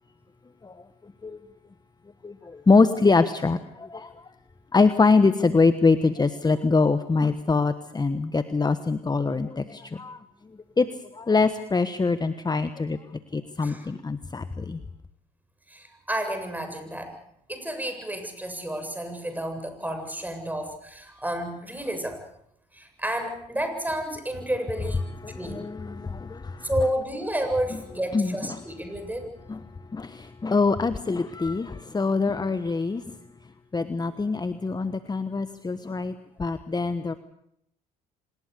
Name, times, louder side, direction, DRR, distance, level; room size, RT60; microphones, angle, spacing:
voice 1, 2.2-4.1 4.7-10.2 10.8-10.9 11.1-13.0 13.3-14.8 25.2-26.7 28.1-28.3 29.5-29.6 29.9-33.0 33.7-36.1 36.4-37.2, left 4 dB, 20° left, 11 dB, 1.3 m, -24 dB
voice 2, 13.6-14.0 15.7-17.1 17.5-22.2 22.7-25.1 25.3-25.7 26.6-29.3, right 1 dB, 10° right, 6 dB, 7.6 m, -31 dB
25.5 x 20.5 x 6.8 m, 0.75 s
hypercardioid pair, 65°, 20 cm